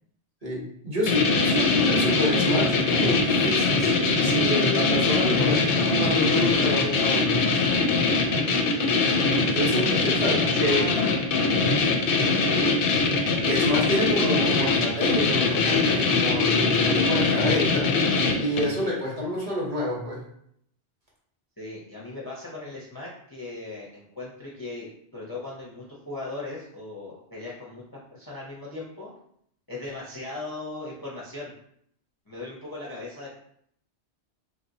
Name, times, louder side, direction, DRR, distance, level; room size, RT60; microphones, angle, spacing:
voice 1, 0.4-7.5 9.5-10.9 13.4-18.1 18.4-20.2, left 1 dB, 40° right, -5 dB, 0.9 m, -28 dB
voice 2, 1.0-1.6 8.3-8.9 9.9-11.2 11.8-12.7 21.6-27.8 28.1-29.1 29.7-31.5 32.3-33.4, left 2 dB, 25° left, -5 dB, 0.5 m, -38 dB
sound 1, 1.1-18.8, left 3 dB, 60° left, 0.7 m, -22 dB
3.2 x 2.8 x 2.6 m, 0.68 s
omnidirectional pair, 1.2 m